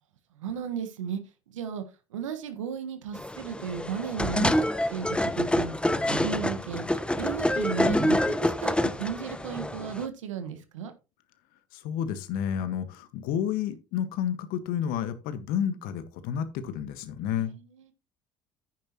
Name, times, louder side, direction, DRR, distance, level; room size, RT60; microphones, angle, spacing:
voice 1, 0.4-1.2 1.5-1.8 2.1-4.6 4.9-6.9 7.2-10.9 17.4-17.9, right 7 dB, 85° right, 1.5 m, -34 dB
sound 1, 3.1-10.1, left 1 dB, 5° left, 0.9 m, -27 dB
voice 2, 11.7-17.5, left 9 dB, 65° left, 1.6 m, -30 dB
10.5 x 9.4 x 3.0 m
hypercardioid pair, 65°, 16 cm